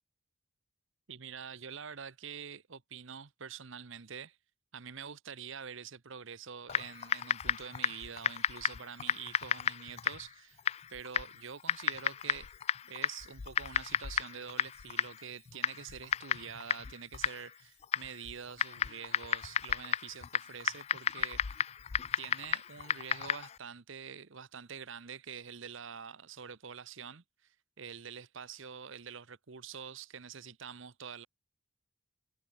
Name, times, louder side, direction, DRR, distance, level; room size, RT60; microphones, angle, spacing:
voice 1, 1.1-4.4 4.7-10.6 10.9-12.5 12.9-21.7 22.2-31.3, right 7 dB, 60° right, 0.9 m, -46 dB
Typing, 6.7-23.6, left 8 dB, 30° left, 0.3 m, -34 dB
head